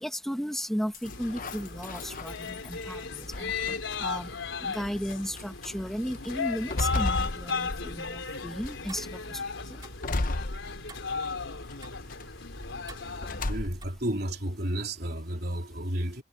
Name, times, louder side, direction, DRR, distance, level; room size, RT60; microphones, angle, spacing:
voice 1, 0.0-3.5 4.0-4.3 4.6-9.4, equal, ahead, 1.6 m, -35 dB
sound 1, 0.9-2.8 3.3-4.0 4.8-4.9 5.4-5.7 6.2-8.2 8.6-9.1 10.0-11.2 11.6-12.2 13.2-14.0, left 2 dB, 45° left, 0.9 m, -34 dB
sound 2, 1.0-13.5, left 4 dB, 75° left, 3.7 m, -36 dB
Tick-tock, 8.6-13.9, right 2 dB, 20° right, 3.0 m, -51 dB
voice 2, 13.4-16.2, right 1 dB, 55° right, 3.6 m, -32 dB
head